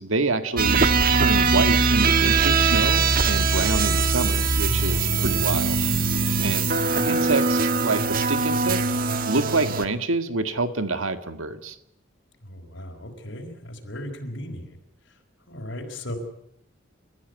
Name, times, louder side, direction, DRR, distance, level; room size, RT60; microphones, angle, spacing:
voice 1, 0.0-5.8 6.4-6.7 7.1-8.8 9.3-11.8, right 3 dB, 80° right, 9 dB, 1.9 m, -27 dB
sound 1, 0.6-9.9, right 4 dB, 45° right, 1.7 m, -21 dB
sound 2, 1.2-6.6, right 1 dB, 25° right, 6.0 m, -42 dB
voice 2, 5.0-5.4 6.3-6.6 12.4-14.8 15.1-15.2 15.5-16.2, left 1 dB, 65° left, 1 dB, 4.6 m, -37 dB
30.0 x 14.5 x 9.4 m, 0.75 s
head